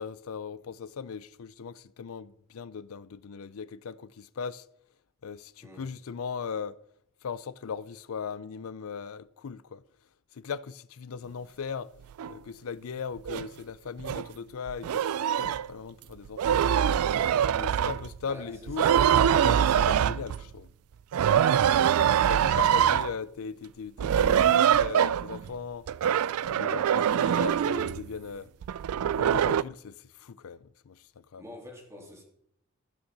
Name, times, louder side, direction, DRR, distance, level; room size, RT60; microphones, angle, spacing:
voice 1, 0.0-4.6 5.2-6.8 7.2-9.8 10.3-11.9 12.3-16.7 17.5-18.9 19.2-20.7 22.2-25.9 26.4-28.5 29.1-31.0 31.3-31.4, left 6 dB, 75° left, 0.5 m, -38 dB
sound 1, 12.2-12.3 13.3-13.5 14.0-14.3 14.7-15.7 16.3-18.2 18.7-20.5 21.1-23.1 24.0-25.5 25.9-28.1 28.6-29.6, right 9 dB, 90° right, 0.3 m, -24 dB
voice 2, 18.2-19.1 21.3-21.7 31.4-32.2, left 1 dB, 15° right, 2.8 m, -46 dB
14.0 x 6.5 x 6.1 m
head